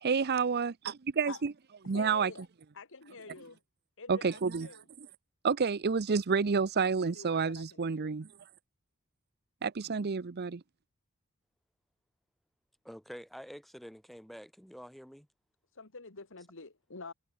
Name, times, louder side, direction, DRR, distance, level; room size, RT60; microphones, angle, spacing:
voice 1, 0.0-1.5 1.9-2.3 4.1-4.7 5.4-8.3 9.6-10.6, right 5 dB, 50° right, 0.6 m, -29 dB
voice 2, 1.9-2.5 2.7-3.6 4.0-4.8 7.1-8.1 15.8-17.1, left 4 dB, 65° left, 1.9 m, -47 dB
voice 3, 12.8-15.3, equal, ahead, 4.5 m, -48 dB
head